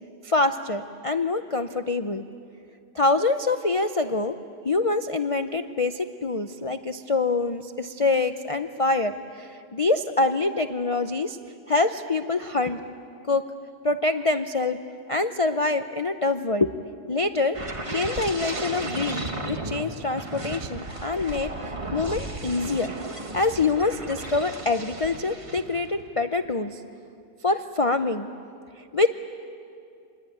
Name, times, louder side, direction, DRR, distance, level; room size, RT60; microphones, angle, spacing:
voice 1, 0.2-2.2 2.9-4.3 4.6-11.4 11.7-12.8 13.3-13.5 13.8-14.8 15.1-16.7 17.1-17.6 17.9-23.0 23.3-26.8 27.4-28.3 28.9-29.1, left 3 dB, 60° left, 9 dB, 0.3 m, -25 dB
sound 1, 17.5-26.0 26.4-26.7, right 2 dB, 20° right, 1.3 m, -34 dB
26.5 x 21.5 x 9.3 m, 2.4 s
omnidirectional pair, 1.7 m